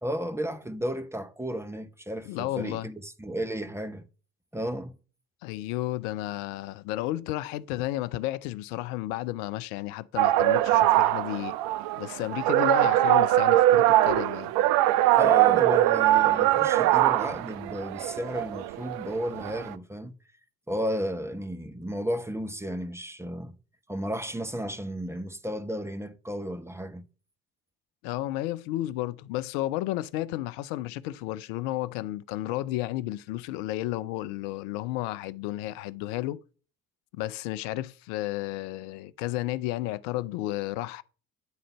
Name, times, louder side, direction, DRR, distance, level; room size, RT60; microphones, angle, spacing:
voice 1, 0.0-4.0 4.5-4.9 15.2-20.1 20.7-23.5 23.9-27.0, equal, 5° right, 1.0 m, -33 dB
voice 2, 2.3-2.9 5.4-11.5 12.0-14.5 28.0-36.4 37.1-41.0, left 16 dB, 70° left, 0.6 m, -32 dB
sound 1, 10.2-19.7, right 14 dB, 60° right, 0.6 m, -22 dB
9.3 x 3.8 x 5.5 m
hypercardioid pair, 50°, 43 cm